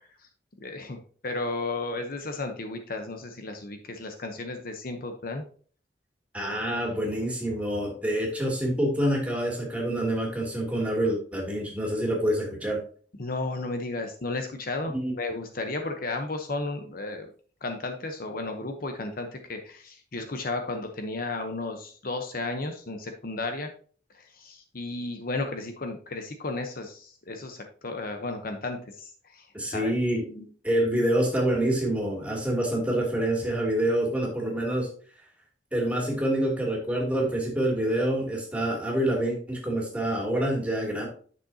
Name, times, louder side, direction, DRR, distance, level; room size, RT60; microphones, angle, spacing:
voice 1, 0.6-1.0 1.2-5.4 13.2-17.3 17.6-23.7 24.1-30.5, left 2 dB, 55° left, 5 dB, 1.0 m, -34 dB
voice 2, 6.3-12.8 14.9-15.1 29.5-30.2 30.6-34.9 35.7-41.1, right 1 dB, 10° right, -2 dB, 2.8 m, -26 dB
10.5 x 6.4 x 2.8 m, 0.44 s
head